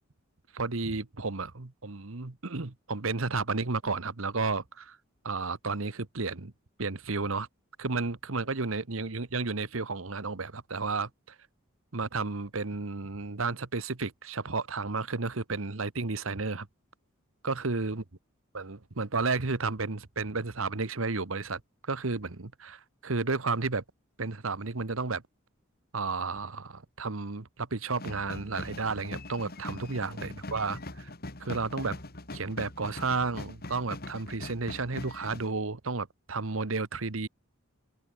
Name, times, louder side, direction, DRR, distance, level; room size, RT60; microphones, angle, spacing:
voice 1, 0.5-5.0 5.2-6.5 6.8-7.5 7.8-11.3 11.9-16.7 17.4-18.0 18.5-23.8 24.2-25.2 25.9-31.1 31.4-32.0 32.3-37.3, right 3 dB, 70° right, 1.3 m, -32 dB
sound 1, 28.0-35.5, left 2 dB, 50° left, 2.8 m, -42 dB
head